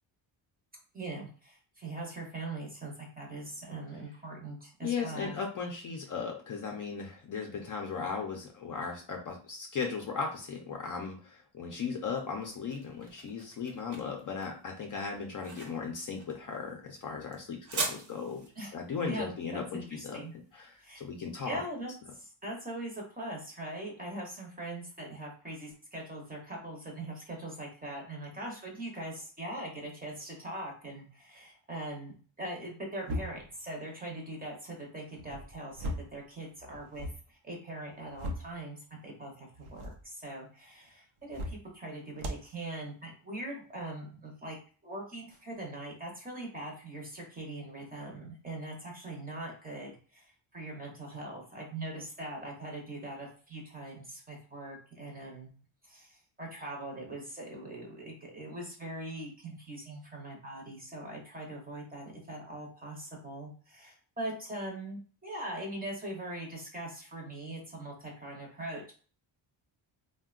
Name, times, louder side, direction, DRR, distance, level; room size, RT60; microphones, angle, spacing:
voice 1, 0.9-5.3 18.6-18.7 19.0-20.3 20.8-21.0 21.5-44.6 44.8-55.5 55.8-68.9, right 1 dB, 20° right, -1 dB, 0.6 m, -41 dB
voice 2, 4.8-18.5 18.7-20.2 20.5-21.6, left 5 dB, 45° left, 2 dB, 0.4 m, -37 dB
sound 1, 12.2-21.2, right 3 dB, 55° right, 0.8 m, -42 dB
sound 2, 33.0-33.6 35.1-36.2 36.6-37.2 37.8-38.6 39.5-40.0 41.2-41.7 42.2-42.5, equal, 90° right, 0.7 m, -38 dB
3.6 x 2.1 x 2.3 m, 0.41 s
wide cardioid pair, 175°, 48 cm